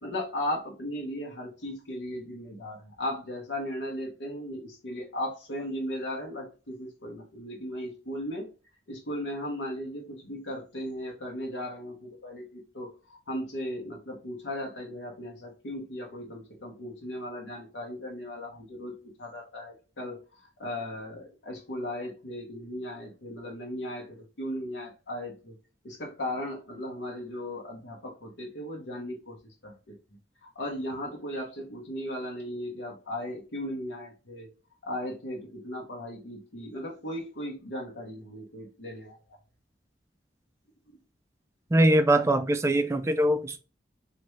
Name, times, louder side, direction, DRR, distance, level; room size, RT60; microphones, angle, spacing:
voice 1, 0.0-8.5 8.9-25.5 25.8-30.0 30.4-34.5 34.8-39.4, left 1 dB, 90° left, 1.0 m, -37 dB
voice 2, 41.7-43.6, right 1 dB, 15° right, 0.3 m, -22 dB
3.2 x 2.5 x 3.1 m
head